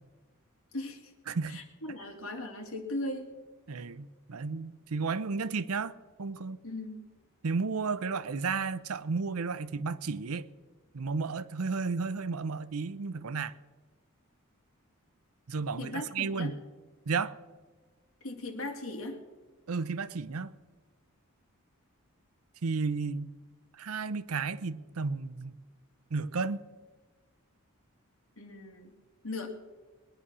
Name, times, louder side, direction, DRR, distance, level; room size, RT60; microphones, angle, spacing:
voice 1, 0.7-1.1 1.5-3.3 6.6-7.0 15.8-16.5 18.2-19.2 28.4-28.9 29.2-29.5, left 2 dB, 65° left, 2.4 m, -38 dB
voice 2, 1.3-1.6 3.7-5.9 6.2-6.6 7.4-10.5 10.9-13.5 15.5-16.6 17.1-17.3 19.7-20.5 22.6-23.3 23.7-25.6 26.1-26.6, right 4 dB, 75° right, 0.6 m, -33 dB
21.0 x 9.8 x 6.1 m
head